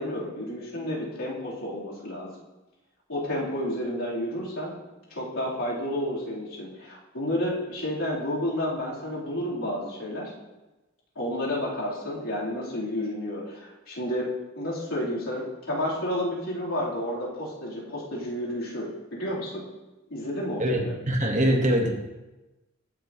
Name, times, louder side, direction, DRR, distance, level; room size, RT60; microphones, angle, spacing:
voice 1, 0.0-2.4 3.1-4.8 5.1-10.3 11.2-14.3 14.6-19.7 20.1-21.0, left 1 dB, 85° left, -7 dB, 3.5 m, -31 dB
voice 2, 21.1-21.9, equal, 35° right, 2 dB, 1.3 m, -22 dB
16.0 x 6.6 x 3.0 m, 1.1 s
head